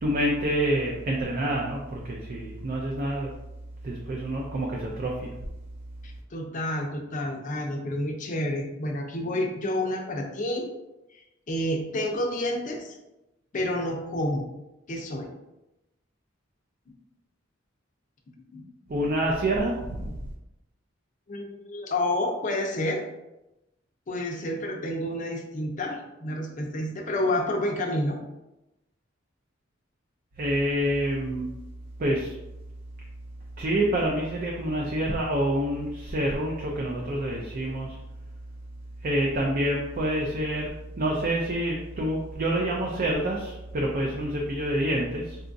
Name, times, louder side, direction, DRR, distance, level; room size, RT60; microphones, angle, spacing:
voice 1, 0.0-3.3 3.8-5.3 18.9-20.2 30.4-31.5 32.0-32.3 33.6-38.0 39.0-40.7 41.0-45.4, right 1 dB, 45° right, -2 dB, 0.4 m, -27 dB
voice 2, 6.0-10.7 11.5-13.0 13.5-14.4 14.9-15.3 18.5-18.6 21.3-23.1 24.1-28.2, left 1 dB, 40° left, 2 dB, 0.5 m, -29 dB
3.8 x 2.3 x 2.5 m, 0.95 s
head